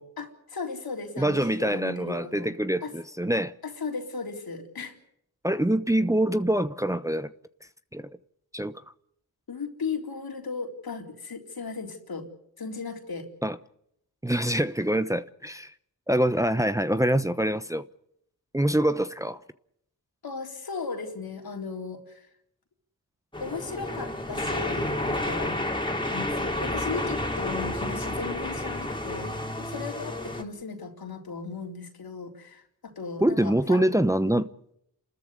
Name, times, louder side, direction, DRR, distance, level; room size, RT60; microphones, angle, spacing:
voice 1, 0.2-2.5 2.8-2.9 3.6-4.9 9.5-12.3 12.6-13.3 20.2-22.3 23.4-25.6 26.1-33.9 34.3-34.5, left 4 dB, 70° left, 3.9 m, -36 dB
voice 2, 1.2-3.5 5.4-7.3 7.9-8.1 8.5-8.8 13.4-13.6 14.2-15.7 16.1-17.9 18.5-19.4 33.2-34.5, right 1 dB, 10° right, 0.9 m, -25 dB
sound 1, 23.3-30.4, left 1 dB, 15° left, 3.6 m, -30 dB
28.5 x 13.5 x 9.7 m
cardioid pair, 45°, 38 cm